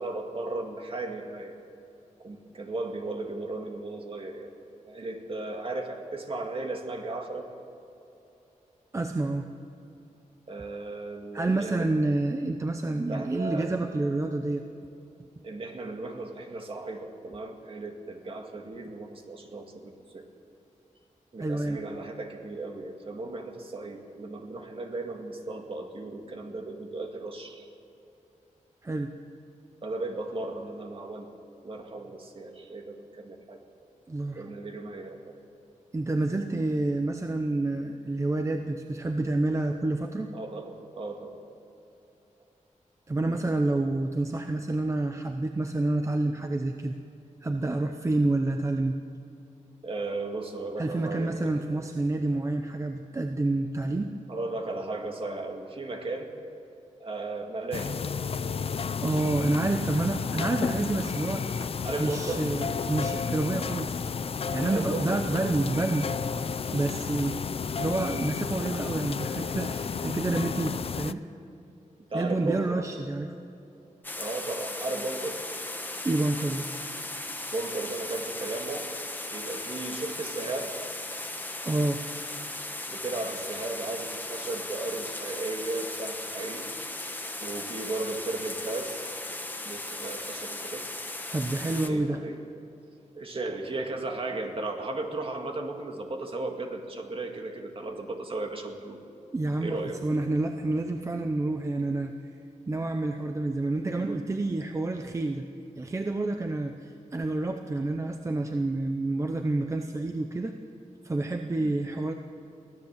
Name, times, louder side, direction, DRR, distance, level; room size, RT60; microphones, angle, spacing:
voice 1, 0.0-1.5 2.2-4.5 4.8-7.5 10.5-11.9 13.1-13.7 15.4-20.3 21.3-27.7 29.8-31.3 31.6-33.6 34.4-35.4 40.3-41.4 49.8-51.5 54.3-56.3 57.0-58.0 59.4-59.6 61.8-62.5 64.6-65.2 72.1-72.8 74.2-75.4 77.5-78.9 79.3-80.8 82.9-86.7 87.4-89.1 89.4-90.9 91.8-92.4 93.2-99.0 99.6-100.0 111.6-111.7, right 2 dB, 45° right, 3 dB, 2.0 m, -35 dB
voice 2, 8.9-9.5 11.3-14.6 21.4-21.8 28.8-29.1 34.1-34.5 35.9-40.3 43.1-47.0 47.4-49.0 50.8-54.1 59.0-61.7 62.0-64.0 64.5-67.5 67.8-71.2 72.1-73.3 76.0-76.7 81.6-82.0 91.3-92.2 99.3-102.1 102.7-105.4 105.8-110.5 111.0-112.1, right 2 dB, 20° right, 5 dB, 0.7 m, -28 dB
sound 1, 57.7-71.1, left 6 dB, 50° left, 0.5 m, -32 dB
sound 2, 74.0-91.9, left 2 dB, 15° left, 1.3 m, -37 dB
23.5 x 16.0 x 7.4 m, 2.9 s
wide cardioid pair, 180°, 13 cm